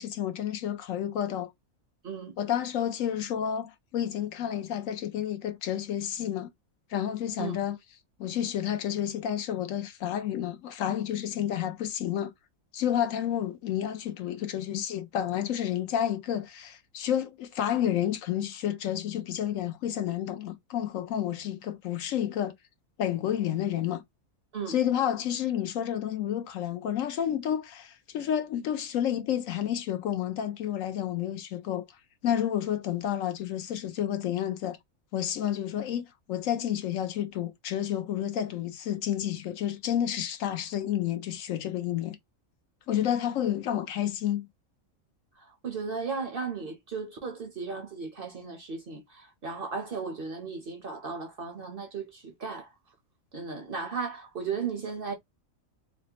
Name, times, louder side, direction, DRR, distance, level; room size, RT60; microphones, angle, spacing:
voice 1, 0.0-1.5 2.4-6.5 6.9-7.8 8.2-12.3 12.7-22.5 23.0-24.0 24.7-31.8 32.2-34.8 35.1-42.2 42.9-44.5, left 10 dB, 70° left, 1.0 m, -30 dB
voice 2, 45.4-52.7 53.3-55.1, right 5 dB, 50° right, 0.8 m, -35 dB
4.1 x 2.0 x 2.8 m
omnidirectional pair, 1.5 m